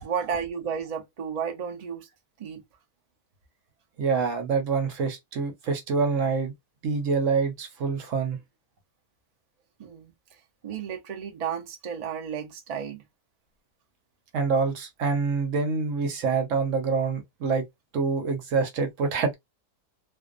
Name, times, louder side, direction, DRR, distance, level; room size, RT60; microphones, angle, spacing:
voice 1, 0.0-2.1 2.4-2.6 9.8-13.0, right 7 dB, 90° right, 0.3 m, -33 dB
voice 2, 4.0-6.5 6.8-8.4 14.3-17.6 17.9-19.3, right 4 dB, 65° right, 0.9 m, -26 dB
2.5 x 2.1 x 2.4 m
omnidirectional pair, 1.6 m